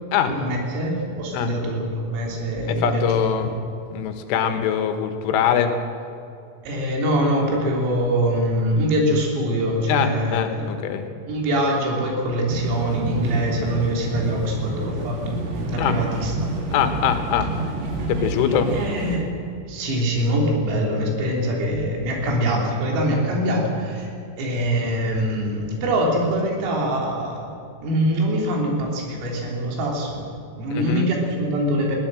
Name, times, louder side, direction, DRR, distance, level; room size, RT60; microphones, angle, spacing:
voice 1, 0.3-3.1 3.4-3.5 6.6-10.7 11.3-15.4 15.7-16.5 18.7-19.3 19.7-24.1 24.4-27.5 27.8-30.2 30.6-32.0, right 1 dB, 90° right, 0 dB, 6.0 m, -23 dB
voice 2, 2.7-3.6 3.9-5.7 9.9-11.1 15.8-16.0 16.7-17.5 18.1-18.7 30.7-31.1, left 8 dB, 75° left, 7 dB, 3.8 m, -22 dB
sound 1, 12.5-19.2, right 2 dB, 55° right, 4.2 m, -29 dB
21.0 x 17.0 x 7.7 m, 2.5 s
omnidirectional pair, 5.8 m